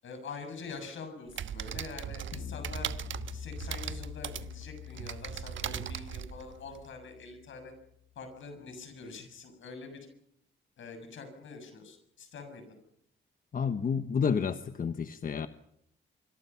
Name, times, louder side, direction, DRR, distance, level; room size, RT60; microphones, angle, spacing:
voice 1, 0.0-2.9 3.3-7.7 8.2-10.1 10.8-12.6, left 4 dB, 70° left, 6 dB, 7.1 m, -45 dB
sound 1, 1.3-6.9, right 9 dB, 70° right, 1.3 m, -39 dB
sound 2, 2.3-7.7, left 7 dB, 90° left, 4.6 m, -45 dB
voice 2, 13.5-15.5, left 6 dB, 45° left, 10 dB, 1.0 m, -30 dB
25.5 x 25.5 x 5.8 m, 0.74 s
wide cardioid pair, 140°, 20 cm